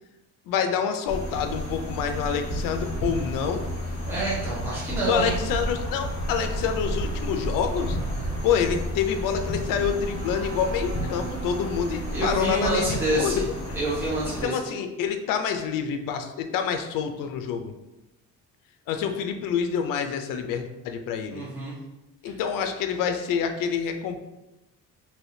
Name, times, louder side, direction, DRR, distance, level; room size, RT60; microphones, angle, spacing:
voice 1, 0.5-3.6 5.1-8.0 8.4-13.3 14.4-17.7 18.9-21.4 22.2-24.2, left 7 dB, 80° left, 6 dB, 0.5 m, -27 dB
sound 1, 1.1-14.4, equal, 45° left, 1.4 m, -31 dB
voice 2, 4.1-5.4 12.1-13.4 13.7-14.5 21.3-21.7, right 2 dB, 5° right, -9 dB, 0.9 m, -27 dB
sound 2, 9.1-14.1, right 2 dB, 55° right, 0.8 m, -43 dB
3.3 x 2.7 x 2.7 m, 0.97 s
cardioid pair, 140°, 33 cm